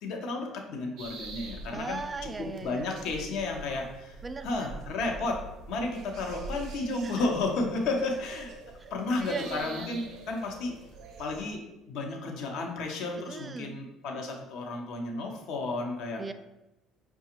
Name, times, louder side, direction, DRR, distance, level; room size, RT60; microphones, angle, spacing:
voice 1, 0.0-2.0 2.6-4.2 4.4-5.4 5.7-8.5 8.9-10.7 11.2-16.2, left 3 dB, 70° left, 1 dB, 0.7 m, -32 dB
sound 1, 1.0-11.5, right 3 dB, 65° right, 0.6 m, -45 dB
voice 2, 1.7-2.9 4.2-4.7 7.0-7.2 8.8-8.9 9.2-9.9 13.2-13.8 16.2-16.3, right 4 dB, 25° right, 9 dB, 0.3 m, -38 dB
4.9 x 2.3 x 2.8 m, 0.98 s
hypercardioid pair, 70°, 0 cm